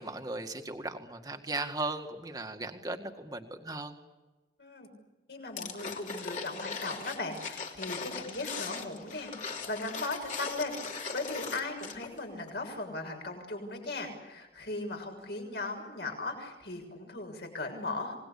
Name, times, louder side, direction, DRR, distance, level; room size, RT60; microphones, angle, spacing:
voice 1, 0.0-3.9, right 2 dB, 20° right, 5 dB, 2.0 m, -37 dB
voice 2, 5.3-18.2, left 2 dB, 70° left, 3 dB, 6.8 m, -38 dB
sound 1, 5.6-12.2 12.5-12.6, left 5 dB, 45° left, 3.0 m, -39 dB
27.0 x 20.5 x 8.5 m, 1.1 s
head